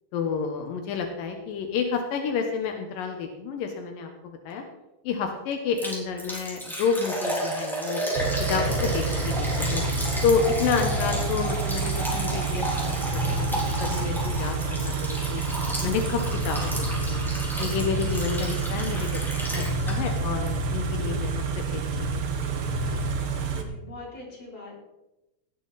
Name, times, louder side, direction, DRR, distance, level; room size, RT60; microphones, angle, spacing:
voice 1, 0.1-4.6 5.0-8.0 8.5-9.8 10.2-13.5 13.8-15.4 15.8-17.2 17.6-19.2 19.5-22.1 22.3-22.5 22.9-23.0, left 6 dB, 85° left, 4 dB, 2.8 m, -29 dB
Liquid, 5.8-20.2 20.5-20.6 21.0-21.1, equal, ahead, 3.0 m, -32 dB
Car / Idling, 8.2-23.6, right 4 dB, 60° right, 1.4 m, -28 dB
voice 2, 23.5-24.8, left 2 dB, 35° left, -4 dB, 4.5 m, -42 dB
17.5 x 9.0 x 4.1 m, 0.96 s
omnidirectional pair, 3.9 m